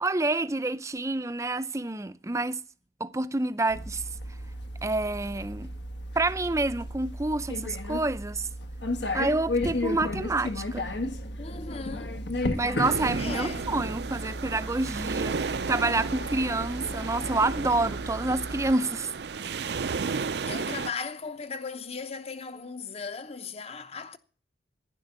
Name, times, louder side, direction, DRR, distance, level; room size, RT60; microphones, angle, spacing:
voice 1, 0.0-2.6 3.0-4.0 4.8-5.7 6.2-8.5 9.1-10.9 12.6-19.1, right 2 dB, 15° right, 0.5 m, -28 dB
sound 1, 3.7-18.7, left 1 dB, 75° left, 1.5 m, -34 dB
sound 2, 10.6-17.6, left 2 dB, 60° left, 3.7 m, -51 dB
voice 2, 11.4-12.3 13.2-13.7 20.1-24.2, left 5 dB, 35° left, 0.9 m, -37 dB
sound 3, 12.8-20.9, right 4 dB, 65° right, 0.5 m, -33 dB
11.5 x 10.5 x 7.1 m
head